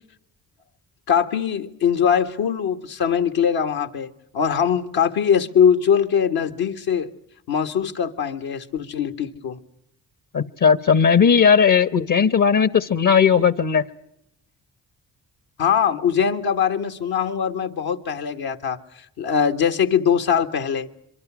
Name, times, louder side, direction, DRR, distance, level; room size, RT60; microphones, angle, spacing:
voice 1, 1.1-7.1 7.5-9.6 15.6-18.8 19.2-20.9, left 7 dB, 75° left, 1.7 m, -21 dB
voice 2, 10.3-13.9, left 7 dB, 55° left, 1.2 m, -17 dB
25.0 x 24.0 x 6.2 m
supercardioid pair, 50°, 37 cm